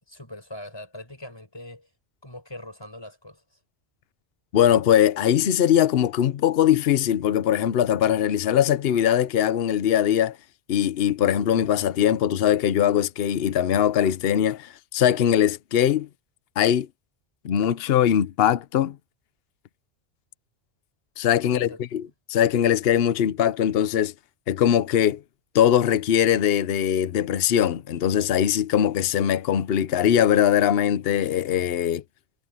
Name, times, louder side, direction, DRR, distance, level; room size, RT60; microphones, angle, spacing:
voice 1, 0.1-1.9 2.2-3.4 21.4-22.0, left 1 dB, 20° left, 5.1 m, -41 dB
voice 2, 4.5-10.4 10.7-16.1 16.6-16.9 17.4-19.0 21.2-22.0 22.3-24.1 24.5-25.2 25.5-32.0, left 10 dB, 60° left, 0.9 m, -21 dB
omnidirectional pair, 1.2 m